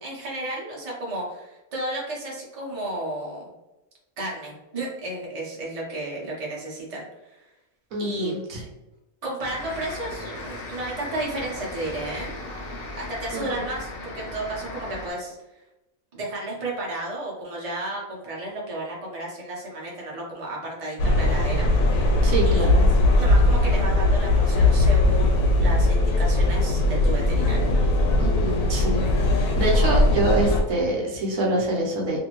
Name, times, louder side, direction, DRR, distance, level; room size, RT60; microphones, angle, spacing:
voice 1, 0.0-3.5 4.2-7.4 8.0-8.3 9.2-12.4 13.0-15.4 16.1-21.7 22.5-22.7 23.2-27.7, right 1 dB, 35° right, -4 dB, 0.6 m, -33 dB
voice 2, 7.9-8.6 13.3-13.6 22.2-22.9 28.2-29.0 29.3-32.2, right 2 dB, 65° right, -2 dB, 1.0 m, -26 dB
sound 1, 9.4-15.1, left 2 dB, 60° left, 0.6 m, -37 dB
sound 2, 21.0-30.6, left 2 dB, 90° left, 1.1 m, -19 dB
2.6 x 2.6 x 2.9 m, 1.0 s
omnidirectional pair, 1.6 m